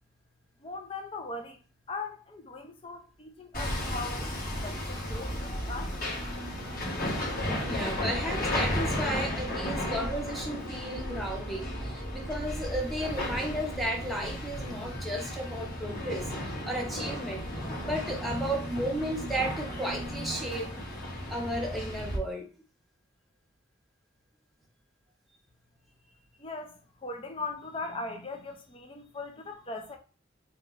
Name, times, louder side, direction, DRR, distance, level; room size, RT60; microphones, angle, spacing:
voice 1, 0.6-1.6 1.9-6.0 26.4-30.0, left 3 dB, 25° left, 0.5 m, -39 dB
Hammer, 3.5-22.2, left 1 dB, 45° left, 1.6 m, -34 dB
voice 2, 7.6-16.3 16.7-17.5 17.8-20.8 21.3-22.5, right 1 dB, ahead, 0.8 m, -34 dB
3.4 x 2.9 x 3.8 m
head